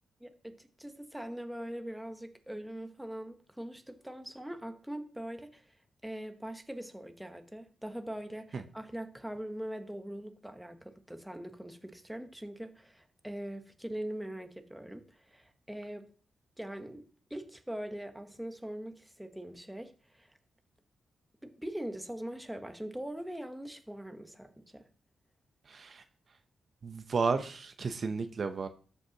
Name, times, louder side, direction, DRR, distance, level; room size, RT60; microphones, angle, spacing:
voice 1, 0.2-5.8 6.0-16.1 16.6-17.0 17.3-20.3 21.4-24.9, right 1 dB, 5° right, 0.9 m, -42 dB
voice 2, 25.7-26.0 26.8-28.7, right 4 dB, 50° right, 0.6 m, -33 dB
13.5 x 5.4 x 2.8 m
cardioid pair, 95°, 0 cm